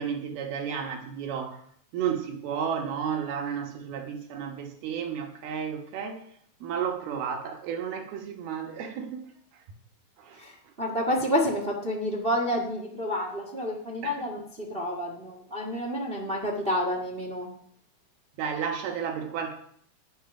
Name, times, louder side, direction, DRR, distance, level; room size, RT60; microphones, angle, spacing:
voice 1, 0.0-1.6 1.9-6.3 6.6-9.2 10.2-10.4 14.0-14.2 18.4-19.5, right 7 dB, 80° right, 3.2 m, -32 dB
voice 2, 10.4-17.5, equal, 60° right, 0.6 m, -29 dB
11.0 x 10.5 x 5.8 m
omnidirectional pair, 4.5 m